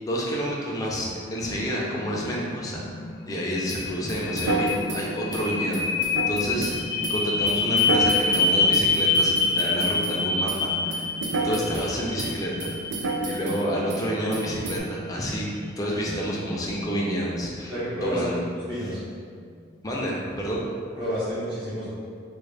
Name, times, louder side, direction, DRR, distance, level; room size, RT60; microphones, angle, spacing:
voice 1, 0.0-2.8 3.3-11.0 11.4-12.7 13.3-15.5 15.8-17.7 18.0-18.3 19.8-20.6, equal, 20° left, -4 dB, 0.5 m, -29 dB
sound 1, 0.9-19.0, left 3 dB, 75° left, 0.4 m, -28 dB
sound 2, 3.7-10.2 10.5-11.9 12.2-13.6 13.9-14.1 14.3-14.8, right 2 dB, 85° right, 0.4 m, -30 dB
voice 2, 17.7-19.0 20.9-21.9, equal, 30° right, -13 dB, 0.8 m, -30 dB
3.7 x 2.2 x 3.3 m, 2.2 s
head